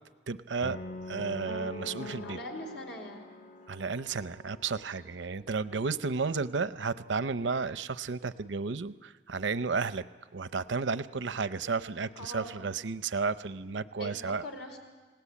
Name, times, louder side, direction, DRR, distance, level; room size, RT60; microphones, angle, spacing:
voice 1, 0.3-0.8 1.1-2.4 3.7-10.0 10.3-14.4, right 4 dB, 90° right, 13 dB, 0.7 m, -32 dB
sound 1, 0.6-4.7, left 2 dB, 45° left, 0.9 m, -43 dB
voice 2, 2.2-3.3 12.2-12.7 14.0-14.8, equal, 85° left, 3 dB, 4.3 m, -42 dB
30.0 x 18.0 x 8.5 m, 1.4 s
head